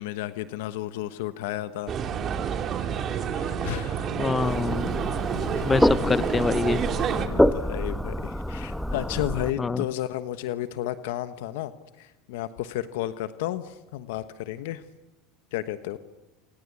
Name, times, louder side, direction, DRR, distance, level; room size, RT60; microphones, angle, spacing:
voice 1, 0.0-1.9 2.7-4.3 5.5-5.7 7.3-14.8 15.5-16.0, left 13 dB, 75° left, 12 dB, 1.2 m, -33 dB
sound 1, 1.9-7.3, right 7 dB, 40° right, 2.9 m, -29 dB
voice 2, 4.2-4.9 5.6-6.8 9.6-9.8, left 4 dB, 20° left, 16 dB, 0.9 m, -25 dB
sound 2, 4.4-9.5, left 1 dB, 5° left, 1.2 m, -27 dB
28.5 x 25.0 x 8.4 m, 0.98 s
supercardioid pair, 105°, 0 cm